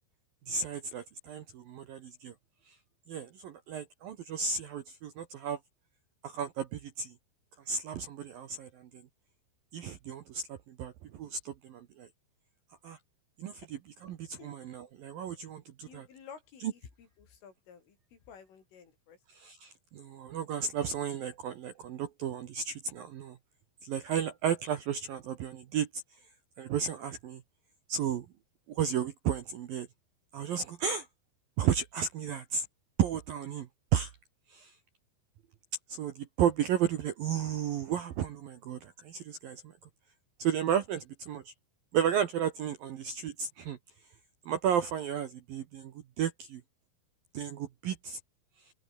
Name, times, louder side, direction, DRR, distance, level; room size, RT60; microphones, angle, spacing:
voice 1, 0.5-2.3 2.7-2.8 3.1-5.6 6.2-7.1 7.7-9.0 9.7-12.1 12.8-13.0 13.4-16.1 16.6-16.7 19.4-23.4 23.8-26.0 26.6-27.4 27.9-28.3 28.7-29.9 30.3-31.1 31.6-32.7 33.0-34.1 34.5-34.7 35.9-39.7 40.4-41.5 41.9-43.8 44.5-46.6 47.3-48.2, right 8 dB, 65° right, 2.3 m, -33 dB
voice 2, 15.8-19.2, left 7 dB, 70° left, 7.5 m, -53 dB
open air
omnidirectional pair, 5.9 m